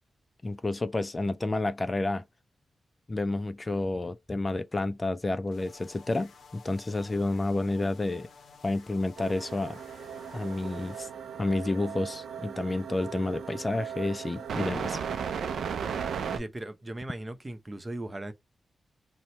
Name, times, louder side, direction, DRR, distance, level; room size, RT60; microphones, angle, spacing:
voice 1, 0.4-2.2 3.1-8.3 8.6-9.8 10.3-11.1 11.4-15.0, left 2 dB, 30° left, 0.3 m, -30 dB
sound 1, 5.5-11.0, left 4 dB, 70° left, 0.6 m, -53 dB
sound 2, 9.2-16.4, right 7 dB, 80° right, 0.4 m, -36 dB
voice 2, 16.3-18.3, right 1 dB, 30° right, 0.7 m, -38 dB
2.8 x 2.1 x 3.9 m
supercardioid pair, 45°, 0 cm